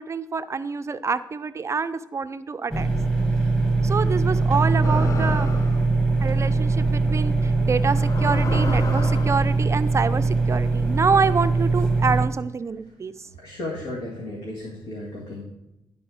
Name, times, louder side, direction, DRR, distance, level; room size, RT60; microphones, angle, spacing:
voice 1, 0.0-2.9 3.8-5.5 6.2-13.3, right 5 dB, 35° right, 12 dB, 0.4 m, -26 dB
sound 1, 2.7-12.3, right 3 dB, 5° left, 1.4 m, -22 dB
sound 2, 4.8-5.9 6.9-7.1 7.9-9.5, left 3 dB, 40° left, 0.9 m, -30 dB
voice 2, 13.4-15.4, left 1 dB, 75° left, -2 dB, 1.8 m, -34 dB
11.0 x 4.2 x 6.1 m, 0.93 s
cardioid pair, 80°, 9 cm